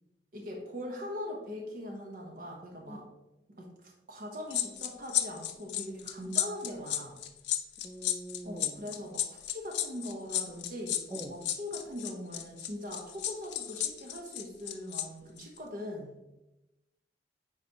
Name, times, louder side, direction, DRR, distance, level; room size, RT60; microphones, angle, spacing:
voice 1, 0.3-3.0 3.6-7.1 8.4-16.1, left 1 dB, 50° right, 0 dB, 1.0 m, -41 dB
sound 1, 4.5-15.0 15.4-15.6, left 12 dB, 75° left, 0.6 m, -33 dB
voice 2, 7.8-8.8 11.1-11.4, right 1 dB, 10° right, 9 dB, 0.4 m, -43 dB
9.8 x 4.1 x 2.9 m, 0.96 s
head